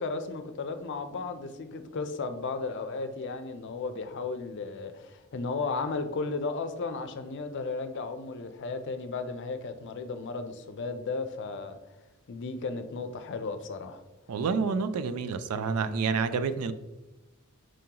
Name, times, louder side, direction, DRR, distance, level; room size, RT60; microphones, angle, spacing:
voice 1, 0.0-11.8 12.3-14.0, left 4 dB, 55° left, 8 dB, 0.5 m, -34 dB
voice 2, 14.3-16.7, right 5 dB, 85° right, 11 dB, 0.4 m, -28 dB
5.0 x 3.7 x 2.8 m, 1.0 s
head